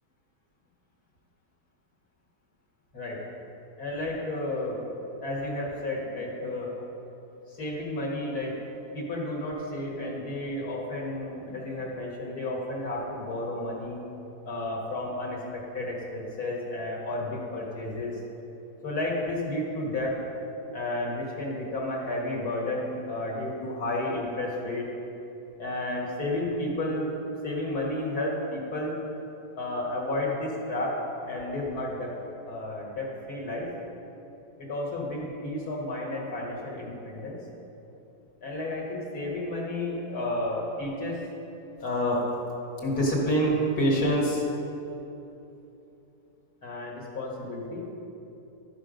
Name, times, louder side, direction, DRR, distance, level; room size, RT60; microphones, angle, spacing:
voice 1, 3.8-4.8 5.2-6.7 7.5-8.5 8.9-14.0 14.5-18.2 18.8-20.2 20.7-24.9 25.6-27.1 27.4-28.9 29.6-32.1 32.5-33.7 34.6-37.4 38.4-41.2 41.8-42.2 42.8-44.5 46.6-47.9, left 1 dB, 60° left, -3 dB, 2.0 m, -31 dB
13.5 x 5.2 x 5.1 m, 2.9 s
omnidirectional pair, 1.8 m